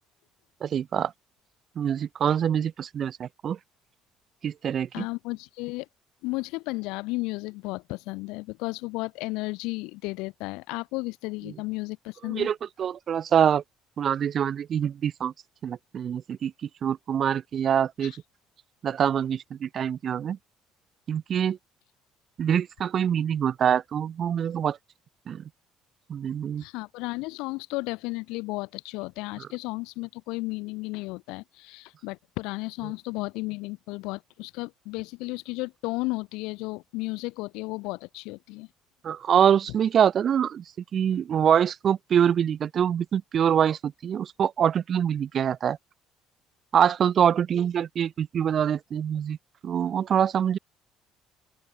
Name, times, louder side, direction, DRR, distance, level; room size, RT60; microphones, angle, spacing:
voice 1, 0.6-1.1 1.8-3.6 4.4-5.0 12.3-13.6 14.0-15.3 15.6-16.5 16.8-18.1 18.8-20.4 21.1-21.6 22.4-24.8 25.3-25.4 26.1-26.6 39.0-40.6 40.9-45.8 46.7-49.4 49.6-50.6, right 8 dB, 50° right, 0.5 m, -25 dB
voice 2, 4.9-5.9 6.2-12.5 18.0-18.2 26.6-38.7, left 24 dB, 80° left, 2.5 m, -33 dB
open air
supercardioid pair, 70°, 0 cm